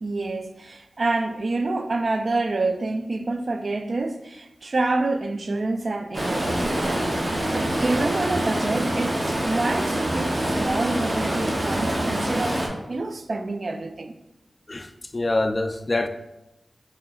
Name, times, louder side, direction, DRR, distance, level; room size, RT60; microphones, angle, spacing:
voice 1, 0.0-7.2 7.5-12.6 12.9-14.2, right 2 dB, 60° right, 0.3 m, -27 dB
Stream, 6.1-12.7, right 1 dB, 30° right, 0.7 m, -25 dB
voice 2, 14.7-16.1, left 2 dB, 40° left, 0.3 m, -25 dB
4.7 x 3.1 x 2.3 m
cardioid pair, 50°, 0 cm